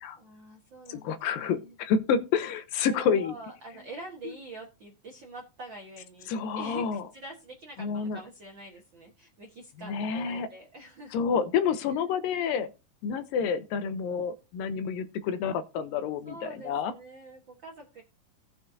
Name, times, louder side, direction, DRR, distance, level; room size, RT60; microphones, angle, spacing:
voice 1, 0.1-1.7 2.9-11.2 11.8-11.9 16.2-18.0, right 2 dB, 55° right, 1.3 m, -45 dB
voice 2, 0.9-3.4 6.3-7.0 7.8-8.2 9.8-10.5 11.1-12.7 13.0-16.9, left 6 dB, 80° left, 2.4 m, -29 dB
17.0 x 6.5 x 2.7 m
omnidirectional pair, 4.1 m